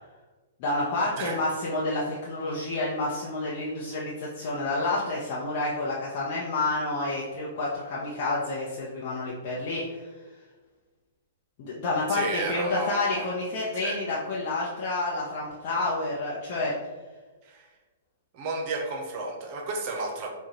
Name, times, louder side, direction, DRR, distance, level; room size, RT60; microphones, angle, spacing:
voice 1, 0.6-10.1 11.6-16.7, left 2 dB, 45° left, -6 dB, 0.7 m, -29 dB
voice 2, 12.1-13.3 13.8-14.0 17.4-17.7 18.3-20.3, right 3 dB, 40° right, 3 dB, 0.7 m, -32 dB
4.6 x 2.3 x 2.9 m, 1.3 s
figure-of-eight pair, 115°, 0 cm